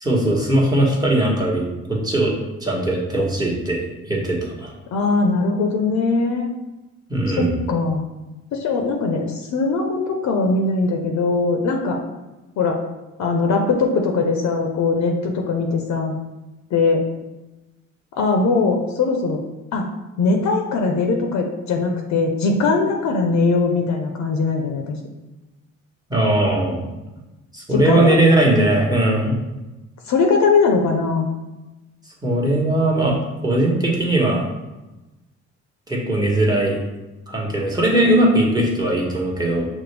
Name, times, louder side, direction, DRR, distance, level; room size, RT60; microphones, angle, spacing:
voice 1, 0.0-2.3 2.6-3.8 4.1-4.7 7.1-7.6 26.1-26.8 27.5-29.4 32.2-33.2 33.4-34.4 35.9-36.8 37.3-39.7, right 1 dB, 15° right, -3 dB, 1.1 m, -19 dB
voice 2, 4.9-6.5 7.3-8.0 8.5-12.0 12.6-12.8 13.2-16.1 16.7-17.0 18.2-19.4 19.7-19.9 20.2-25.0 27.7-28.1 30.1-31.3, left 4 dB, 65° left, 3 dB, 0.6 m, -20 dB
6.0 x 2.2 x 3.3 m, 1.1 s
cardioid pair, 90°, 30 cm